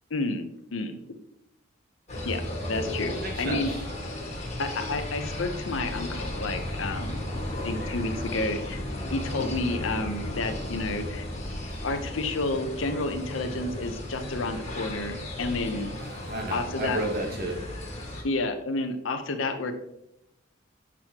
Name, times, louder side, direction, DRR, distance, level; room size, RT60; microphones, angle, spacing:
voice 1, 0.1-1.0 2.2-2.4 2.7-3.7 4.6-7.2 7.6-11.2 11.8-16.0 16.5-17.0 18.2-19.7, left 2 dB, 85° left, 7 dB, 0.8 m, -30 dB
sound 1, 2.1-18.2, left 1 dB, 35° left, 1.7 m, -35 dB
voice 2, 2.8-3.8 7.6-7.7 16.0-17.6, right 1 dB, 50° right, 2 dB, 1.4 m, -33 dB
7.8 x 6.1 x 2.9 m, 0.83 s
head